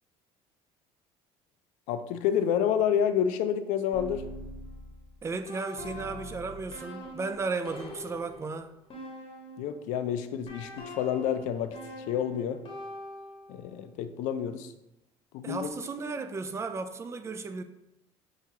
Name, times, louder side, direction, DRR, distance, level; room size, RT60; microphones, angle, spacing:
voice 1, 1.9-4.2 9.6-12.6 13.5-14.7 15.3-15.7, left 9 dB, 75° left, 0.4 m, -29 dB
sound 1, 3.9-9.9 10.5-13.7, left 1 dB, 40° left, 1.0 m, -43 dB
voice 2, 5.2-8.7 15.4-17.6, right 4 dB, 20° right, 0.3 m, -34 dB
5.7 x 2.4 x 2.8 m
supercardioid pair, 90°, 13 cm